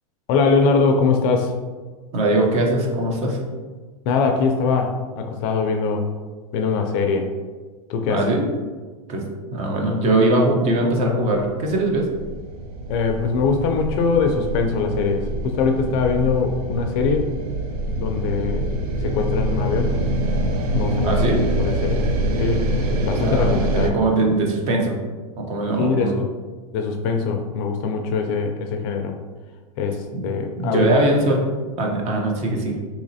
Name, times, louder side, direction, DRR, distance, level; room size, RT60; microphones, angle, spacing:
voice 1, 0.3-1.5 4.1-6.1 6.5-7.3 7.9-8.2 12.9-17.3 17.9-18.7 19.0-19.9 20.7-21.2 21.6-22.0 22.4-24.0 25.8-26.1 26.7-29.2 29.8-31.1, left 5 dB, 40° left, 4 dB, 0.4 m, -22 dB
voice 2, 2.1-3.4 8.1-8.5 9.1-9.2 9.5-12.1 21.0-21.4 23.2-25.0 25.4-26.1 30.1-30.3 30.6-31.4 31.8-32.7, right 2 dB, 35° right, 1 dB, 0.7 m, -21 dB
sound 1, 11.3-23.9, right 1 dB, 85° right, 0.6 m, -25 dB
3.9 x 2.9 x 2.7 m, 1.4 s
supercardioid pair, 140°, 19 cm